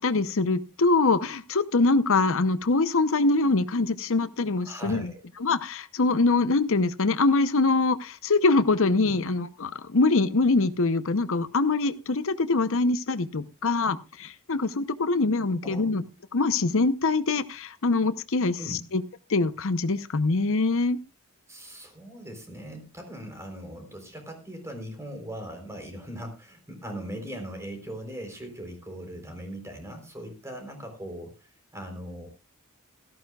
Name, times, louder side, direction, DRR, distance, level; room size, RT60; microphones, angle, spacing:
voice 1, 0.0-5.1 5.4-16.0 16.3-19.0 19.3-21.0, left 3 dB, 65° left, 12 dB, 0.8 m, -24 dB
voice 2, 4.6-5.2 15.6-16.0 18.6-18.9 21.5-32.3, equal, 15° right, 4 dB, 3.8 m, -39 dB
17.5 x 14.0 x 2.4 m, 0.27 s
head